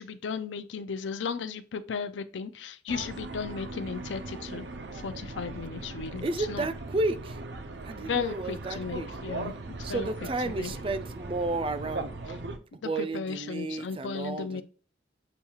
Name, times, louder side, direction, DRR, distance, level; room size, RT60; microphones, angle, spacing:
voice 1, 0.0-4.7 4.9-6.6 7.9-10.1 10.5-10.7 12.8-14.6, left 5 dB, 85° left, 0.5 m, -35 dB
sound 1, 2.9-12.6, right 2 dB, 75° right, 0.6 m, -39 dB
voice 2, 6.2-7.4 7.8-9.1 9.8-12.1 12.8-14.6, right 2 dB, 30° right, 0.3 m, -32 dB
6.9 x 2.3 x 2.9 m
head